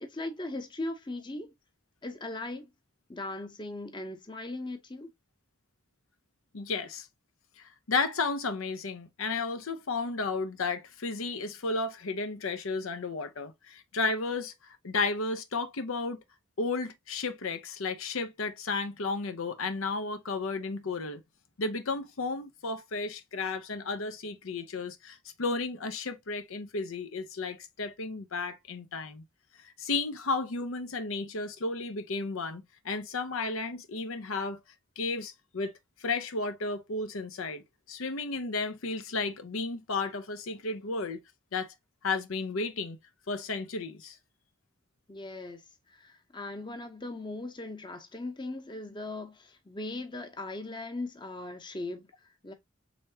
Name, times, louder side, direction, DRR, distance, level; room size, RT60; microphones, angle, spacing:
voice 1, 0.0-1.5 2.0-2.7 3.1-5.1 45.1-52.5, left 2 dB, 20° left, 0.7 m, -39 dB
voice 2, 6.5-7.1 7.6-16.2 16.6-21.2 21.6-29.2 29.6-34.6 35.0-41.2 41.5-41.7 42.0-43.0 43.3-44.2, left 3 dB, 85° left, 0.7 m, -33 dB
5.0 x 3.4 x 2.7 m
head